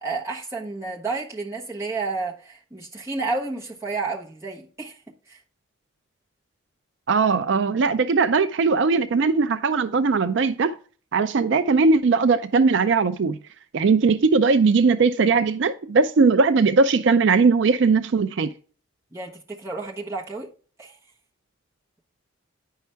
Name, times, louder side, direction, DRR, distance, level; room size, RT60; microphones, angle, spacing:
voice 1, 0.0-5.0 5.3-5.4 19.1-20.5 20.8-21.0, right 3 dB, 15° right, 1.2 m, -31 dB
voice 2, 7.1-10.7 11.1-13.4 13.7-18.5, right 4 dB, 60° right, 0.4 m, -19 dB
9.1 x 5.6 x 3.4 m
head